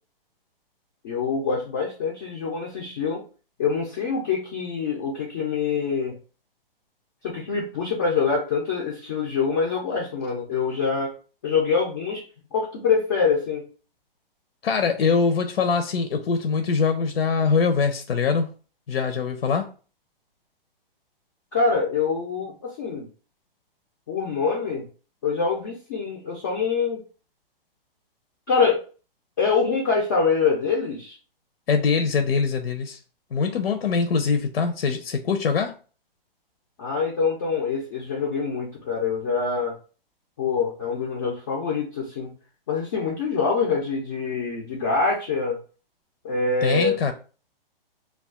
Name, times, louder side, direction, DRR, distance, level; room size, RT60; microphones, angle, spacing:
voice 1, 1.0-3.2 3.6-6.1 7.2-11.1 11.4-12.2 12.5-13.6 21.5-23.1 24.1-24.8 25.2-27.0 28.5-28.8 29.4-31.2 36.8-39.7 40.4-42.3 42.7-45.6 46.2-47.0, left 5 dB, 20° left, -3 dB, 0.3 m, -25 dB
voice 2, 14.6-18.5 18.9-19.7 31.7-33.0 33.3-35.8 46.6-47.1, left 5 dB, 85° left, 7 dB, 0.5 m, -23 dB
2.3 x 2.3 x 3.4 m, 0.36 s
hypercardioid pair, 145°, 29 cm